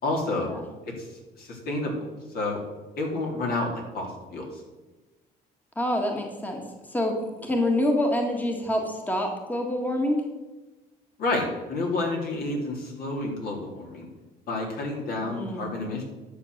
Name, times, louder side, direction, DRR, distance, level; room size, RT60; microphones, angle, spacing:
voice 1, 0.0-0.5 1.0-1.1 1.4-2.6 3.0-4.6 11.2-14.1 14.5-16.0, left 2 dB, 65° left, 0 dB, 3.3 m, -30 dB
voice 2, 5.7-6.6 6.9-10.2 15.2-15.6, left 1 dB, 10° left, 1 dB, 1.7 m, -26 dB
11.0 x 6.6 x 6.5 m, 1.2 s
cardioid pair, 110°, 17 cm